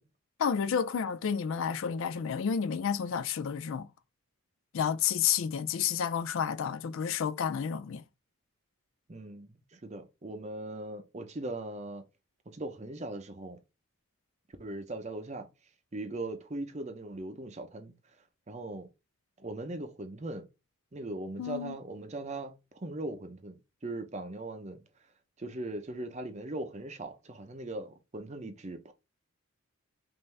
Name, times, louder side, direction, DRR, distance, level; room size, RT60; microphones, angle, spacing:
voice 1, 0.4-3.9 4.7-8.0 21.4-21.8, left 7 dB, 60° left, 0.3 m, -30 dB
voice 2, 9.1-12.0 12.5-13.6 14.6-15.5 15.9-17.9 18.5-18.9 19.4-20.5 20.9-24.8 25.4-28.9, right 2 dB, 30° right, 0.6 m, -39 dB
5.4 x 2.6 x 3.2 m
head